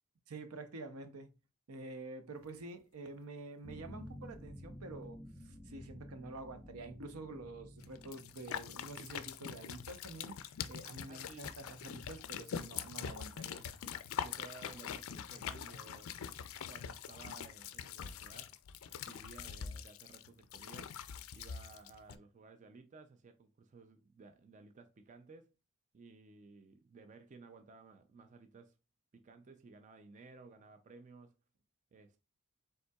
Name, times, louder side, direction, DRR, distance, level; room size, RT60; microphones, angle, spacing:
voice 1, 0.3-1.3 1.7-13.7, right 2 dB, 80° right, 0.7 m, -48 dB
sound 1, 3.6-8.9, equal, 10° right, 1.2 m, -52 dB
sound 2, 7.8-22.2, left 8 dB, 65° left, 0.4 m, -44 dB
voice 2, 11.1-11.5 13.8-16.2 16.7-18.6 19.1-21.0 21.3-25.5 25.9-28.8 29.1-31.3 31.9-32.2, right 3 dB, 35° right, 0.3 m, -56 dB
5.3 x 3.6 x 2.3 m
head